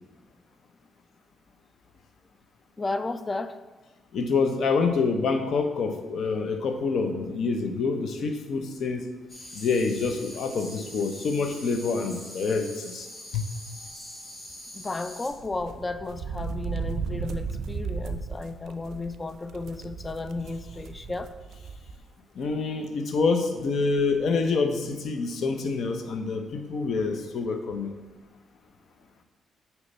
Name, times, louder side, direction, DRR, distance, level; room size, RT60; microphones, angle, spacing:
voice 1, 2.8-3.6 13.8-14.3 14.7-21.3, left 3 dB, 25° left, 12 dB, 0.3 m, -34 dB
voice 2, 4.1-9.0 9.5-13.1 13.3-13.5 22.4-27.9, left 4 dB, 65° left, 6 dB, 0.7 m, -27 dB
sound 1, 9.3-15.3, left 1 dB, 45° left, 1.9 m, -43 dB
sound 2, 15.3-22.0 22.4-22.5 23.6-23.7 23.9-24.2, right 6 dB, 70° right, 0.4 m, -35 dB
6.5 x 3.1 x 5.3 m, 1.2 s
cardioid pair, 90°, 0 cm